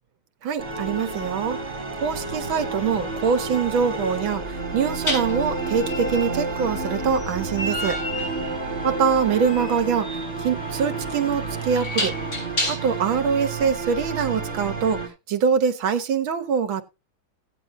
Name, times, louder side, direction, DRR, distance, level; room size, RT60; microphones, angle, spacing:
voice 1, 0.4-1.6 2.0-8.0 8.8-12.1 12.7-15.0 15.3-16.8, right 6 dB, 75° right, 1.8 m, -24 dB
sound 1, 0.6-15.1, right 3 dB, 30° right, 3.1 m, -30 dB
sound 2, 2.6-2.8 5.0-13.1, left 1 dB, 45° left, 5.8 m, -32 dB
16.5 x 8.6 x 2.6 m
omnidirectional pair, 2.3 m